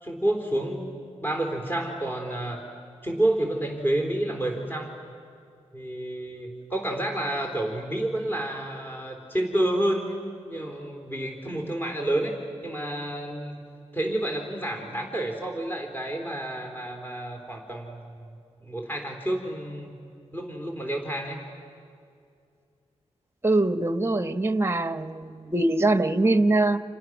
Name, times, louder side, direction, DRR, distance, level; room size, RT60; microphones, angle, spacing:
voice 1, 0.0-2.6 3.0-4.9 5.7-12.4 12.6-13.6 13.9-18.1 18.6-20.0 20.3-21.4, right 1 dB, 15° left, 2 dB, 3.5 m, -29 dB
voice 2, 23.4-26.8, right 2 dB, 20° right, 9 dB, 1.1 m, -23 dB
30.0 x 28.5 x 6.2 m, 2.4 s
cardioid pair, 75°, 12 cm